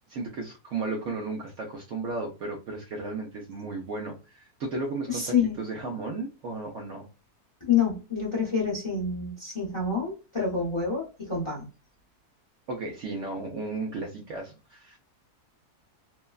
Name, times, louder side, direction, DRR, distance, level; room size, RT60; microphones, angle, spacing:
voice 1, 0.1-7.1 12.7-15.0, right 3 dB, 65° right, 1 dB, 0.8 m, -34 dB
voice 2, 5.1-5.6 7.6-11.7, left 6 dB, 30° left, -3 dB, 0.6 m, -27 dB
3.1 x 2.2 x 2.3 m, 0.31 s
omnidirectional pair, 1.7 m